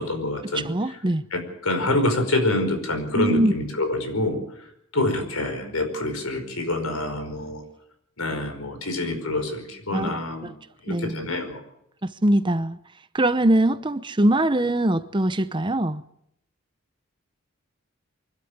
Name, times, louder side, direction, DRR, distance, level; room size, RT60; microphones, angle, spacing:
voice 1, 0.0-0.7 1.3-4.4 4.9-7.6 8.2-10.5 10.8-11.6, left 2 dB, 85° left, 5.2 m, -26 dB
voice 2, 0.5-1.2 3.2-3.5 9.9-10.5 10.9-11.3 12.0-12.8 13.1-16.0, right 1 dB, 20° right, 0.8 m, -22 dB
24.5 x 12.5 x 9.5 m
head